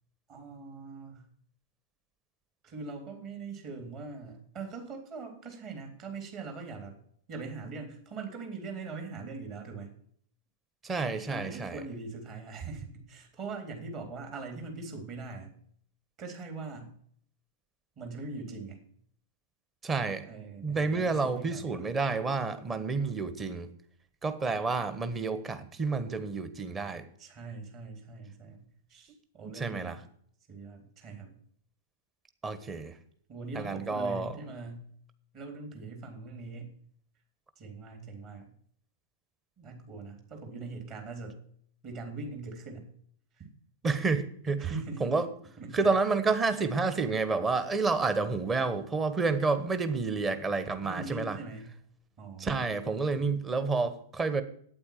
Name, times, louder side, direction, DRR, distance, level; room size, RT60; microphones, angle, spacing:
voice 1, 0.3-1.3 2.6-6.9 7.3-9.9 11.3-15.5 16.2-17.0 18.0-18.8 20.3-22.0 27.2-30.0 30.5-31.3 33.3-34.9 35.3-36.7 37.6-38.5 39.6-41.4 41.8-42.9 43.3-43.4 44.5-45.1 45.6-45.9 50.8-51.8 52.2-53.3, right 4 dB, 35° right, 3 dB, 3.8 m, -42 dB
voice 2, 10.8-11.8 19.8-20.2 20.6-23.7 24.2-27.0 29.5-30.0 32.4-32.9 33.5-34.3 43.8-44.7 45.0-45.3 45.7-51.4 52.4-54.4, right 4 dB, 20° right, 10 dB, 1.3 m, -29 dB
8.9 x 8.7 x 8.9 m, 0.62 s
figure-of-eight pair, 100°, 0 cm